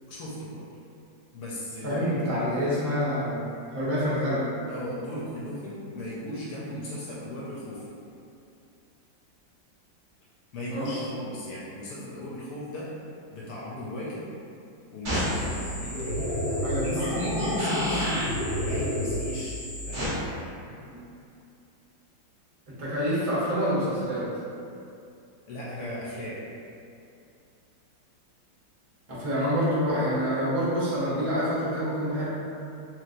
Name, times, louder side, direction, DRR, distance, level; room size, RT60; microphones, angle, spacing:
voice 1, 0.1-0.7 1.3-2.2 4.7-7.9 10.5-12.9 13.3-14.3 14.9-18.2 18.6-19.6 19.9-20.2 25.5-26.4, left 1 dB, 70° left, -6 dB, 1.0 m, -37 dB
voice 2, 1.8-3.4 3.7-4.5 10.7-10.9 16.6-17.1 20.8-20.9 22.7-24.4 29.1-32.3, equal, 60° right, -9 dB, 0.3 m, -27 dB
sound 1, 15.0-20.0, equal, 40° right, 0.7 m, -28 dB
3.0 x 3.0 x 2.4 m, 2.6 s
omnidirectional pair, 2.0 m